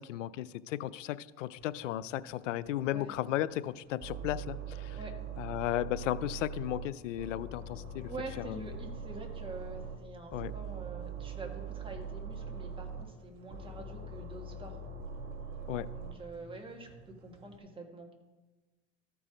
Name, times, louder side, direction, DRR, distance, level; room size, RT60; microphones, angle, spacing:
voice 1, 0.0-5.0 5.4-8.1 8.4-8.6 10.3-10.5 15.7-15.9, left 13 dB, 85° left, 18 dB, 0.5 m, -35 dB
sound 1, 1.6-17.6, right 1 dB, 50° right, 2.2 m, -56 dB
sound 2, 4.0-6.9 7.2-10.0 10.3-13.0 13.5-16.1, right 5 dB, 30° right, 2.1 m, -42 dB
sound 3, 6.0-11.7, right 2 dB, 20° left, 2.6 m, -68 dB
voice 2, 8.1-14.8 15.9-18.1, right 3 dB, 15° right, 2 dB, 1.6 m, -46 dB
13.5 x 4.7 x 5.0 m, 1.2 s
hypercardioid pair, 105°, 36 cm